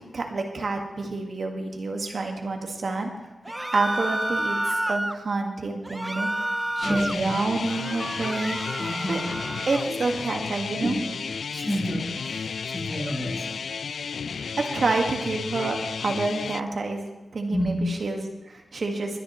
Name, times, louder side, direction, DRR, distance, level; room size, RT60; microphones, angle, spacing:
voice 1, 0.1-3.1 3.7-6.3 6.8-8.6 9.1-9.2 9.7-11.0 14.3-19.2, right 3 dB, 60° right, 2 dB, 1.8 m, -28 dB
sound 1, 3.4-5.2 5.8-7.2 7.6-9.9, right 1 dB, 10° right, 0.4 m, -30 dB
sound 2, 6.8-16.6, left 6 dB, 80° left, 0.3 m, -33 dB
voice 2, 6.8-7.2 8.8-9.3 10.8-10.9 11.5-13.5 17.5-17.8, equal, 15° left, 0 dB, 3.5 m, -29 dB
22.5 x 10.0 x 3.2 m, 1.1 s
wide cardioid pair, 80°, 0 cm